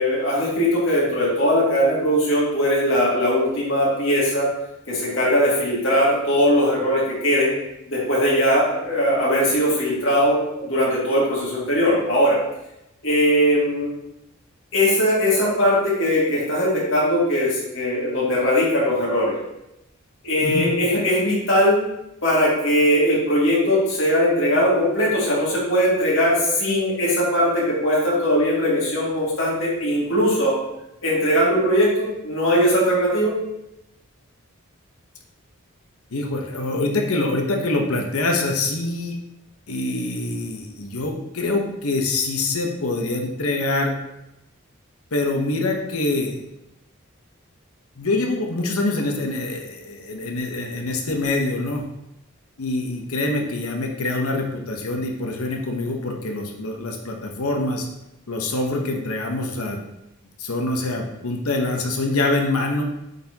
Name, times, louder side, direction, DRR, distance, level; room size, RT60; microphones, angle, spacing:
voice 1, 0.0-4.5 4.9-7.5 7.9-12.4 13.0-13.9 14.7-19.3 20.2-21.8 22.2-30.6 31.0-33.3, equal, 60° left, -6 dB, 2.3 m, -20 dB
voice 2, 36.1-39.1 39.7-43.9 45.1-46.4 48.0-51.8 52.6-57.9 58.3-59.8 60.4-62.8, left 2 dB, 85° left, 2 dB, 1.0 m, -25 dB
8.4 x 4.2 x 2.9 m, 0.88 s
head